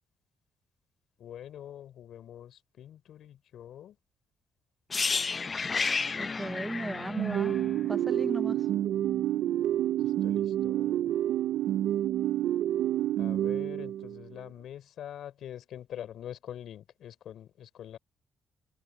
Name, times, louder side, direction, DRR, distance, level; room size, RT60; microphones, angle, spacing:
voice 1, 1.2-4.0 10.0-11.1 13.2-18.0, left 10 dB, 70° left, 4.6 m, -45 dB
sound 1, 4.9-8.8 9.0-9.2, left 4 dB, 35° left, 0.7 m, -32 dB
voice 2, 6.2-7.6 7.9-8.6, right 2 dB, 15° right, 0.6 m, -35 dB
sound 2, 7.2-14.3, right 12 dB, 80° right, 0.4 m, -28 dB
cardioid pair, 90°, 0 cm